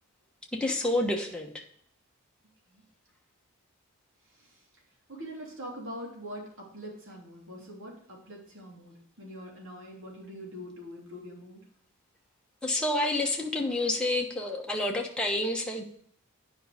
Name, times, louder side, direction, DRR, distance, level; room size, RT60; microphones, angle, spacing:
voice 1, 0.5-1.6 12.6-15.8, left 1 dB, 5° left, -1 dB, 1.2 m, -29 dB
voice 2, 5.1-11.6, equal, 60° right, -2 dB, 3.2 m, -43 dB
9.8 x 5.3 x 5.1 m, 0.62 s
head